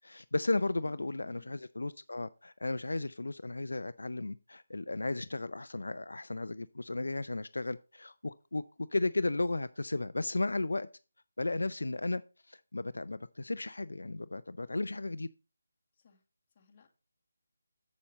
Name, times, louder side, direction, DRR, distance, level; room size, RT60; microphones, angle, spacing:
voice 1, 0.0-10.9 11.4-12.2 12.5-15.3, left 2 dB, 80° left, 0.4 m, -34 dB
voice 2, 0.8-1.6 15.9-16.2 16.6-16.9, left 7 dB, 30° left, 2.0 m, -59 dB
7.4 x 7.1 x 4.2 m
figure-of-eight pair, 160°, 0 cm